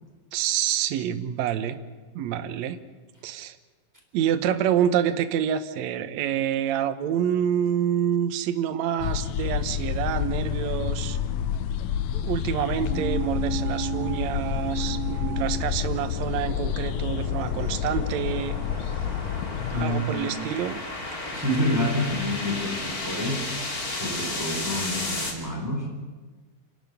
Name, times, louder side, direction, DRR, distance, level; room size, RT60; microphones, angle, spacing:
voice 1, 0.3-1.8 2.1-2.8 3.2-3.6 4.1-11.2 12.1-18.6 18.9-19.1 19.7-20.8, right 9 dB, 65° right, 9 dB, 2.1 m, -27 dB
sound 1, 9.0-19.8, left 9 dB, 75° left, 2.2 m, -29 dB
sound 2, 12.2-25.3, left 2 dB, 25° left, 3.0 m, -35 dB
sound 3, 12.8-16.6 16.9-17.0, right 10 dB, 90° right, 2.9 m, -34 dB
voice 2, 19.7-20.3 21.3-23.6 23.9-25.9, left 1 dB, 5° right, 1 dB, 4.0 m, -28 dB
29.0 x 12.0 x 9.3 m, 1.4 s
omnidirectional pair, 3.9 m